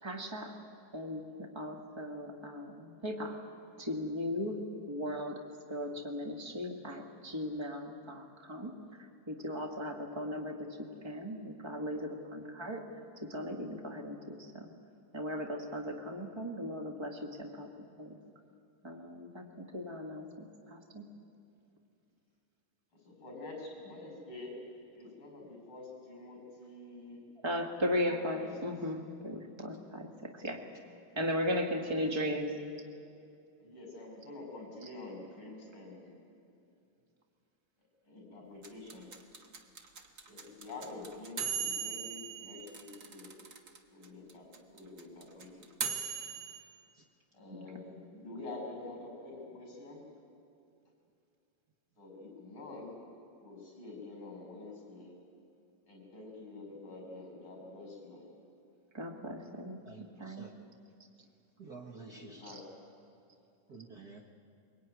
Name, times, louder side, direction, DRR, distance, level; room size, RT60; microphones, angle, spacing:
voice 1, 0.0-0.6 0.9-3.4 3.8-5.4 5.7-8.7 9.3-10.7 11.0-12.8 13.3-14.7 15.1-17.7 18.0-18.1 18.8-21.0 27.4-30.6 31.1-32.6 47.5-47.6 58.9-59.8 60.2-60.5, left 1 dB, 30° right, 2 dB, 0.4 m, -37 dB
voice 2, 23.0-24.6 24.9-27.2 27.7-28.9 31.9-32.0 33.6-36.1 38.0-39.2 40.3-43.4 43.9-45.7 47.3-50.0 52.0-53.0 53.4-55.1 55.9-58.3 62.1-62.6, left 2 dB, 35° left, 1 dB, 7.1 m, -47 dB
sound 1, 38.6-43.8 44.0-44.1 44.3-46.6, right 7 dB, 50° right, 1.1 m, -38 dB
voice 3, 59.8-60.5 61.6-62.5 63.7-64.3, right 4 dB, 75° right, 0 dB, 0.8 m, -50 dB
23.0 x 23.0 x 9.4 m, 2.5 s
omnidirectional pair, 3.9 m